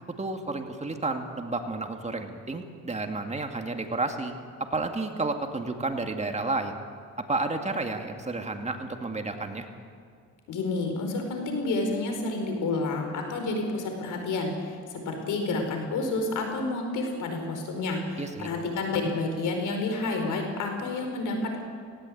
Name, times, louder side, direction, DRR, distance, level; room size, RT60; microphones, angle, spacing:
voice 1, 0.2-6.8 7.3-9.6 18.2-18.5, right 3 dB, 20° right, 4 dB, 2.2 m, -31 dB
voice 2, 10.5-21.6, left 3 dB, 80° left, 4 dB, 4.8 m, -29 dB
19.0 x 17.5 x 8.8 m, 2.1 s
cardioid pair, 90°, 30 cm